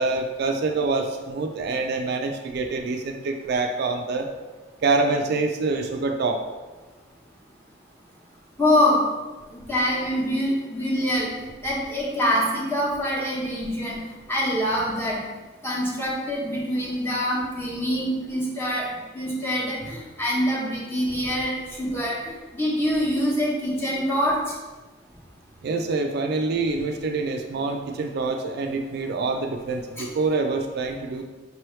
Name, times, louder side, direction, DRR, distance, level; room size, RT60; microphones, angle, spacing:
voice 1, 0.0-4.3 4.8-6.4 25.6-31.2, right 3 dB, 55° right, 4 dB, 0.4 m, -26 dB
voice 2, 8.6-9.0 9.5-11.3 11.6-14.0 14.3-15.2 15.6-18.9 19.1-24.5 30.0-30.1, equal, 15° left, -5 dB, 1.0 m, -25 dB
5.3 x 3.0 x 3.1 m, 1.2 s
head